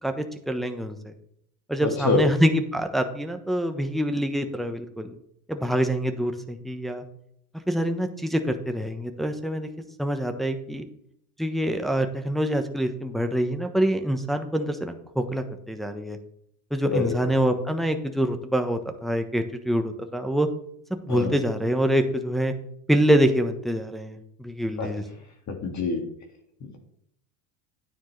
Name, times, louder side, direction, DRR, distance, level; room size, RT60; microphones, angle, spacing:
voice 1, 0.0-1.1 1.7-5.1 5.5-7.0 7.7-9.7 10.0-10.8 11.4-16.2 16.7-20.5 20.9-22.5 22.9-25.0, equal, ahead, 5 dB, 1.1 m, -25 dB
voice 2, 1.8-2.2 16.9-17.1 21.1-21.3 24.8-24.9 25.5-26.0, left 4 dB, 40° left, 3 dB, 2.1 m, -25 dB
9.5 x 9.3 x 3.3 m, 0.71 s
hypercardioid pair, 85°, 43 cm